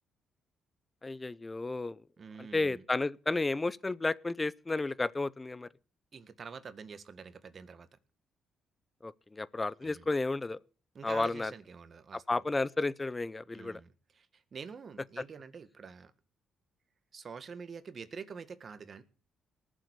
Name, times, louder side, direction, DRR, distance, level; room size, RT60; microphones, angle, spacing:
voice 1, 1.0-2.0 2.5-5.7 9.0-10.6 11.0-11.5 12.3-13.8, left 2 dB, 20° left, 0.6 m, -32 dB
voice 2, 2.2-2.8 6.1-7.9 9.8-10.1 10.9-12.2 13.5-16.1 17.1-19.0, right 5 dB, 45° right, 1.7 m, -47 dB
19.0 x 7.6 x 8.2 m
cardioid pair, 90°, 0 cm